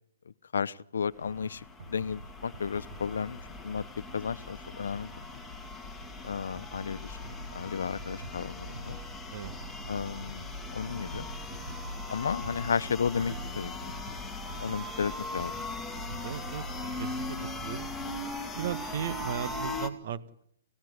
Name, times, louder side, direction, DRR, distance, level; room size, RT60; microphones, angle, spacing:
voice 1, 0.5-3.4 3.6-3.8 4.1-5.1 6.2-7.2 7.5-9.0 9.9-10.5 10.7-11.3 12.1-13.7 14.6-15.5, left 6 dB, 75° left, 16 dB, 1.0 m, -33 dB
sound 1, 1.2-19.9, left 2 dB, 5° left, 2.2 m, -40 dB
sound 2, 1.3-19.6, right 2 dB, 80° right, 7.3 m, -45 dB
voice 2, 16.2-16.6 17.0-17.9 18.5-20.2, right 9 dB, 45° right, 13 dB, 1.6 m, -36 dB
30.0 x 16.5 x 9.8 m, 0.79 s
hypercardioid pair, 155°, 0 cm